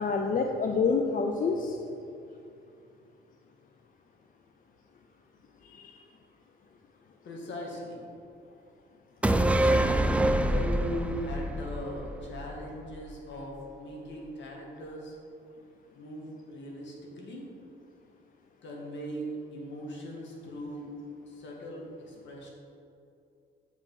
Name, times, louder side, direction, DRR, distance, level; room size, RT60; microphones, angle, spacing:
voice 1, 0.0-1.8 5.6-6.0, left 4 dB, 45° left, 3 dB, 0.6 m, -28 dB
voice 2, 7.2-8.0 9.6-15.1 15.9-17.5 18.6-20.9 21.3-22.5, equal, 65° left, -1 dB, 2.0 m, -39 dB
sound 1, 9.2-12.8 13.1-13.2, right 1 dB, 5° right, 0.4 m, -26 dB
7.6 x 4.9 x 5.7 m, 2.6 s
cardioid pair, 90°, 20 cm